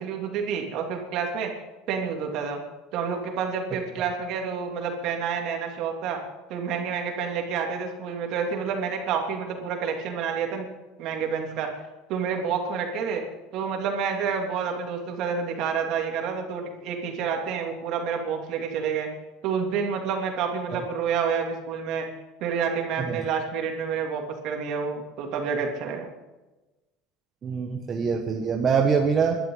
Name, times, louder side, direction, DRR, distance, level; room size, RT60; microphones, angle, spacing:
voice 1, 0.0-1.5 1.9-2.6 2.9-6.2 6.5-10.7 11.0-11.7 12.1-13.2 13.5-19.1 19.4-22.1 22.4-26.1, right 6 dB, 60° right, 2 dB, 2.8 m, -29 dB
voice 2, 27.4-29.4, right 6 dB, 35° right, 1 dB, 1.5 m, -24 dB
22.5 x 12.0 x 4.0 m, 1.1 s
supercardioid pair, 110°, 0 cm